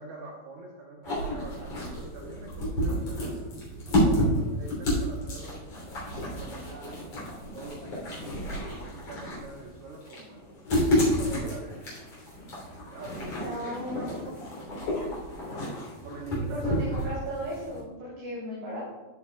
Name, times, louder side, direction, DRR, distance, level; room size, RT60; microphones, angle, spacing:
voice 1, 0.0-3.5 3.9-5.6 6.2-10.6 10.9-11.7 12.9-14.3 14.8-15.4 16.0-16.8, right 3 dB, 70° right, -2 dB, 2.6 m, -44 dB
sound 1, 1.0-17.8, equal, 35° left, 3.8 m, -30 dB
voice 2, 13.4-14.2 16.5-18.8, equal, 55° right, -9 dB, 4.7 m, -36 dB
15.0 x 7.2 x 2.3 m, 1.2 s
omnidirectional pair, 5.8 m